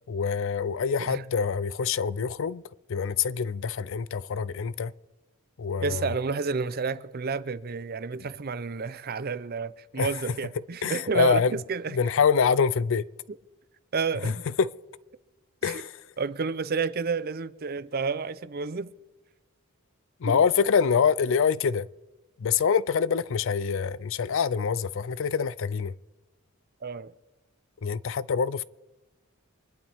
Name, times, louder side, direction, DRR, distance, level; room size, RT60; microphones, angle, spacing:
voice 1, 0.1-2.6 2.9-4.9 5.6-6.2 8.2-8.3 9.9-10.4 10.8-11.6 11.9-13.1 14.2-14.7 15.6-16.1 20.2-21.9 22.4-25.9 27.8-28.6, left 6 dB, 60° left, 0.4 m, -25 dB
voice 2, 5.8-12.0 13.9-14.4 15.7-15.8 16.2-18.9 20.3-20.4 26.8-27.1, right 5 dB, 45° right, 0.6 m, -30 dB
24.5 x 11.5 x 3.5 m
head